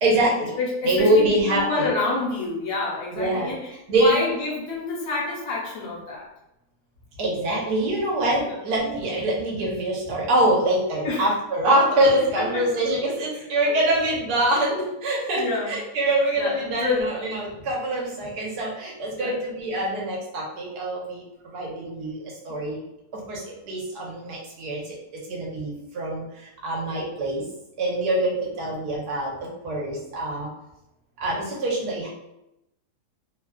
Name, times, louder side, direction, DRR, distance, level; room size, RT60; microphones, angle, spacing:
voice 1, 0.0-0.5 0.8-1.9 3.1-3.5 3.9-4.2 7.2-22.8 23.1-24.8 25.3-27.4 27.8-30.5 31.2-32.1, right 1 dB, 75° right, -3 dB, 1.3 m, -24 dB
voice 2, 0.6-6.3 8.4-8.6 11.0-11.3 12.4-12.7 15.3-15.8 16.4-17.1 19.1-19.4 22.5-22.6 28.6-28.7, left 3 dB, 60° left, -5 dB, 1.2 m, -28 dB
3.2 x 2.3 x 2.2 m, 0.87 s
omnidirectional pair, 1.8 m